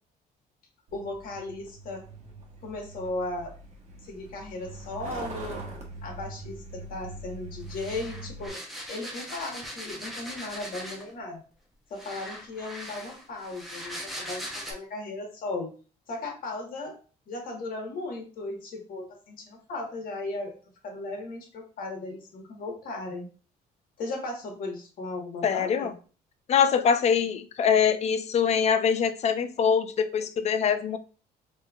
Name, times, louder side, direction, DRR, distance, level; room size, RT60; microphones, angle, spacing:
voice 1, 0.9-2.0 2.6-3.5 4.1-5.6 6.0-8.6 8.9-11.4 11.9-15.7 16.1-17.0 17.3-20.5 20.8-23.3 24.0-25.9, left 2 dB, 60° left, 0 dB, 1.5 m, -36 dB
Truck, 0.9-8.5, right 2 dB, 40° right, 1.2 m, -42 dB
sound 1, 7.7-11.2 12.0-14.7, equal, ahead, 0.9 m, -40 dB
voice 2, 25.4-25.9 26.5-31.0, left 7 dB, 40° left, 11 dB, 0.5 m, -23 dB
4.3 x 3.1 x 2.4 m, 0.37 s
cardioid pair, 110°, 17 cm